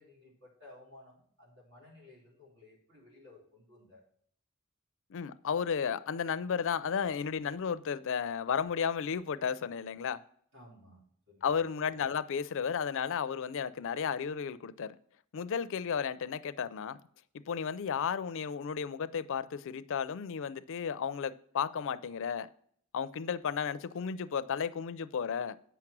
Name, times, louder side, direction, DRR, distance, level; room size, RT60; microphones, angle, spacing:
voice 1, 0.0-4.0 10.5-11.5, left 2 dB, 75° right, 4.3 m, -56 dB
voice 2, 5.1-10.2 11.4-15.0 15.3-17.0 17.3-22.5 22.9-25.6, left 7 dB, 60° left, 0.4 m, -33 dB
8.2 x 6.0 x 6.0 m
head